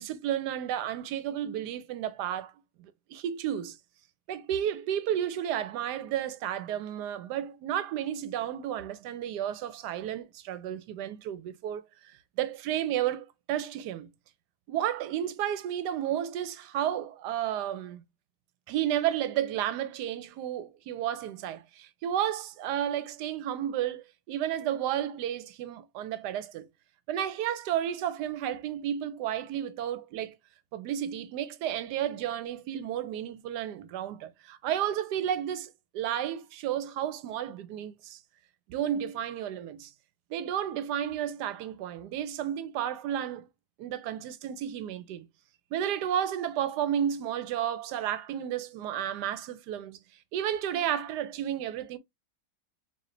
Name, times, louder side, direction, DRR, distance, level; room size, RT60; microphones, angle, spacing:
voice 1, 0.0-2.5 2.8-3.8 4.3-11.8 12.4-14.1 14.7-18.0 18.7-26.7 27.1-30.4 30.7-38.2 38.7-39.9 40.3-43.5 43.8-45.3 45.7-50.0 50.3-52.0, right 10 dB, 85° right, 1.2 m, -32 dB
4.2 x 2.6 x 3.1 m
omnidirectional pair, 1.7 m